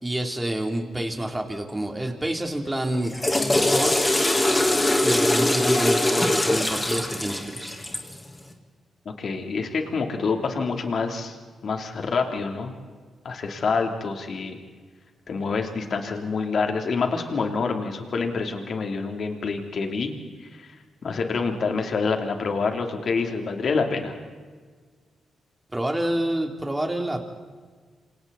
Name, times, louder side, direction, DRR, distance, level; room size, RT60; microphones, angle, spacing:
voice 1, 0.0-3.1 3.7-4.0 5.0-7.7 25.7-27.2, right 1 dB, 10° right, 3 dB, 3.2 m, -28 dB
Water / Toilet flush, 2.9-8.2, left 1 dB, 15° left, 3.2 m, -22 dB
voice 2, 9.0-11.4 11.6-12.7 13.2-14.6 15.3-20.1 20.6-20.7 21.0-24.1, left 4 dB, 55° left, 4 dB, 3.2 m, -27 dB
28.0 x 28.0 x 4.2 m, 1.5 s
cardioid pair, 105°, 0 cm